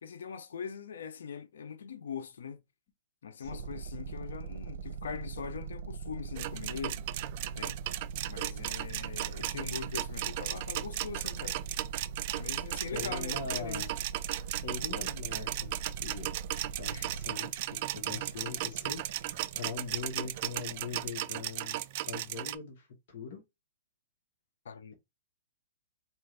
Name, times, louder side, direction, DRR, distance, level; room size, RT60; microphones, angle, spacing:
voice 1, 0.0-2.6 3.2-7.0 7.5-11.6 12.4-13.8 24.6-24.9, left 6 dB, 80° left, 0.6 m, -42 dB
voice 2, 3.4-3.7 12.9-14.0 14.6-16.3 16.7-21.8 22.1-23.4, left 5 dB, 50° left, 1.3 m, -41 dB
sound 1, 3.4-21.1, right 6 dB, 70° right, 0.7 m, -42 dB
sound 2, 6.4-22.5, right 15 dB, 40° right, 0.3 m, -36 dB
4.4 x 2.5 x 3.3 m
hypercardioid pair, 155°, 0 cm